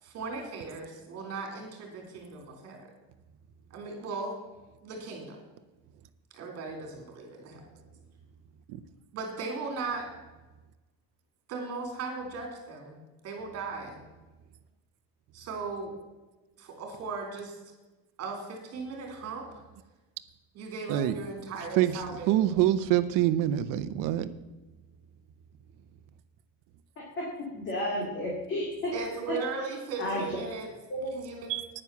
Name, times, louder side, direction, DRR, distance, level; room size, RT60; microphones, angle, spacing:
voice 1, 0.0-2.8 3.7-4.4 4.8-5.4 6.3-7.6 9.1-10.1 11.5-13.0 13.2-14.0 15.3-15.9 16.6-17.6 18.2-19.5 20.5-22.5 28.9-30.7 31.1-31.5, right 4 dB, 45° right, 3 dB, 3.6 m, -37 dB
voice 2, 21.8-24.3 31.5-31.7, right 12 dB, 65° right, 13 dB, 0.9 m, -26 dB
voice 3, 27.0-27.3 27.5-28.9 30.0-30.2 30.9-31.1, left 1 dB, 35° left, -3 dB, 3.0 m, -32 dB
10.0 x 9.5 x 7.1 m, 1.1 s
cardioid pair, 180°, 35 cm